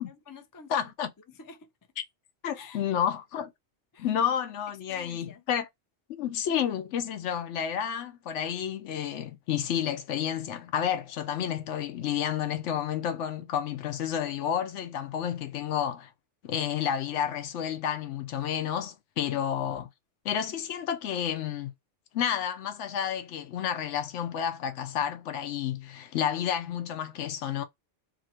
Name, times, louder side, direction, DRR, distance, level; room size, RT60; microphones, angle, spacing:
voice 1, 0.0-0.9 1.3-1.7 2.5-2.9 3.9-4.1 4.9-5.4, left 5 dB, 30° left, 0.4 m, -49 dB
voice 2, 0.7-1.1 2.4-3.5 4.0-5.7 6.1-16.1 16.4-19.9 20.2-21.7 22.1-27.6, left 9 dB, 70° left, 0.9 m, -30 dB
2.8 x 2.7 x 4.2 m
omnidirectional pair, 1.3 m